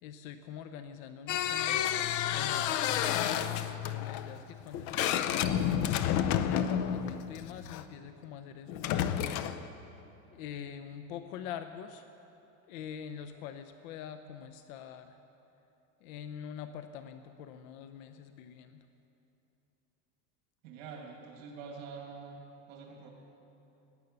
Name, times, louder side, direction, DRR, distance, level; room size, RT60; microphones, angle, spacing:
voice 1, 0.0-5.8 6.4-9.6 10.3-12.1 12.7-15.2 16.0-18.8, left 8 dB, 75° left, 9 dB, 0.8 m, -44 dB
sound 1, 1.3-7.8 8.7-9.7, left 10 dB, 45° left, 0.6 m, -30 dB
voice 2, 20.6-22.4 22.7-23.1, right 5 dB, 70° right, 0 dB, 2.4 m, -45 dB
18.0 x 11.0 x 6.7 m, 3.0 s
cardioid pair, 160°, 41 cm